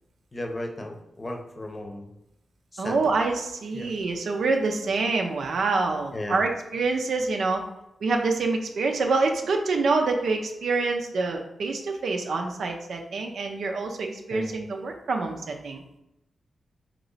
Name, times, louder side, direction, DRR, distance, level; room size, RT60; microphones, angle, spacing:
voice 1, 0.3-2.1 2.7-3.1 3.7-3.9 6.1-6.4 14.3-14.6, left 1 dB, 30° left, 2 dB, 0.8 m, -35 dB
voice 2, 2.8-7.6 8.0-15.8, right 3 dB, 75° right, 3 dB, 0.5 m, -26 dB
3.0 x 2.9 x 4.0 m, 0.88 s
cardioid pair, 55°, 0 cm